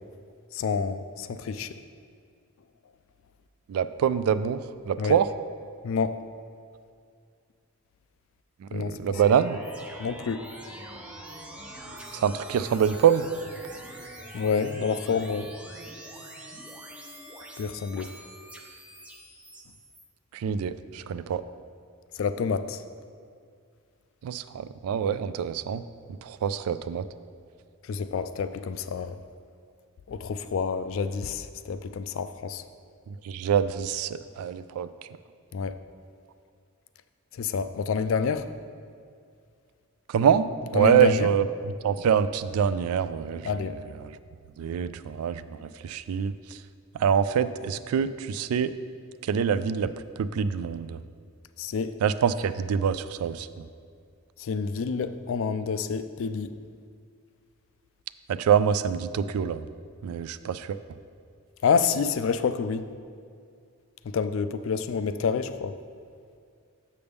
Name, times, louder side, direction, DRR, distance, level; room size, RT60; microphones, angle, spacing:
voice 1, 0.5-1.7 5.0-5.2 5.8-6.2 8.7-9.2 10.0-10.4 14.3-15.5 17.6-18.1 22.2-22.8 27.9-29.2 30.1-32.6 35.5-35.8 37.4-38.5 40.8-41.3 43.4-43.8 51.6-51.9 54.4-56.5 61.6-62.9 64.1-65.7, left 5 dB, 60° left, 11 dB, 0.3 m, -28 dB
voice 2, 3.7-4.6 4.9-5.3 8.7-9.6 12.1-13.3 20.3-21.4 24.2-25.8 26.2-27.0 33.2-34.9 40.1-43.5 44.0-44.2 44.6-46.3 46.9-48.7 49.2-49.9 50.2-51.0 52.0-53.6 58.3-59.6 60.0-60.8, right 8 dB, 85° right, 16 dB, 0.3 m, -25 dB
sound 1, 9.1-20.0, right 1 dB, 5° right, 0.4 m, -44 dB
6.9 x 6.6 x 3.5 m, 2.3 s
head